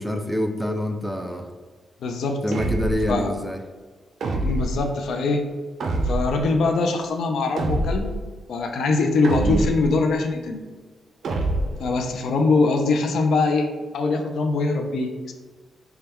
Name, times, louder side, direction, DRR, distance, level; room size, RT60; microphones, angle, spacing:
voice 1, 0.0-1.5 2.4-3.6 9.4-9.7, equal, ahead, 5 dB, 0.3 m, -26 dB
voice 2, 2.0-2.4 3.1-3.3 4.4-5.5 6.0-8.1 8.5-10.6 11.8-13.7 13.9-15.3, left 3 dB, 80° left, 4 dB, 0.4 m, -22 dB
sound 1, 2.5-3.2 4.2-4.8 5.8-6.5 7.6-8.2 9.2-9.9 11.2-11.9, right 2 dB, 65° right, 0.4 m, -25 dB
3.5 x 2.2 x 4.3 m, 1.4 s
cardioid pair, 100°, 0 cm